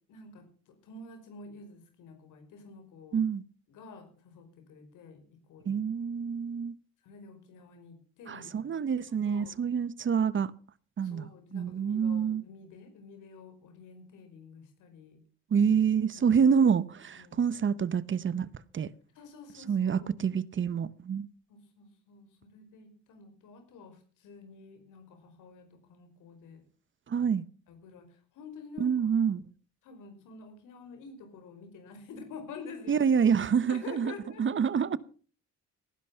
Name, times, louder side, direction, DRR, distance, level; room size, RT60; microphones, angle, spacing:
voice 1, 0.1-3.2 3.7-5.8 7.0-8.6 9.1-9.6 11.0-15.2 16.2-16.4 17.1-17.5 19.1-20.1 21.5-26.6 27.2-27.3 27.7-29.1 29.8-33.1 33.7-34.4, left 4 dB, 85° left, 5.1 m, -49 dB
voice 2, 3.1-3.4 5.7-6.8 8.3-10.5 11.0-12.4 15.5-18.9 19.7-21.3 27.1-27.4 28.8-29.4 32.9-35.0, right 7 dB, 40° right, 0.9 m, -27 dB
18.5 x 11.0 x 5.7 m
cardioid pair, 90°, 30 cm